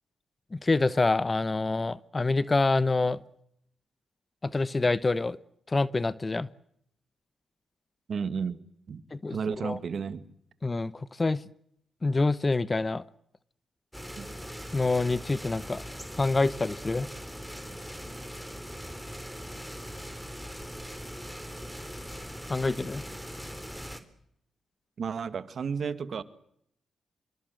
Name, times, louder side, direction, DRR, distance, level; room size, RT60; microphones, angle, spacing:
voice 1, 0.5-3.2 4.4-5.4 5.7-6.5 9.1-9.4 9.6-9.8 10.6-11.4 12.0-13.0 14.7-15.8 16.2-17.1 22.5-23.0, left 3 dB, 30° left, 18 dB, 1.0 m, -26 dB
voice 2, 8.1-8.6 8.9-9.0 9.3-10.2 14.2-14.4 25.0-26.2, right 6 dB, 60° right, 13 dB, 1.8 m, -32 dB
sound 1, 13.9-24.0, equal, ahead, 3.7 m, -40 dB
26.0 x 23.5 x 7.9 m, 0.72 s
supercardioid pair, 50°, 0 cm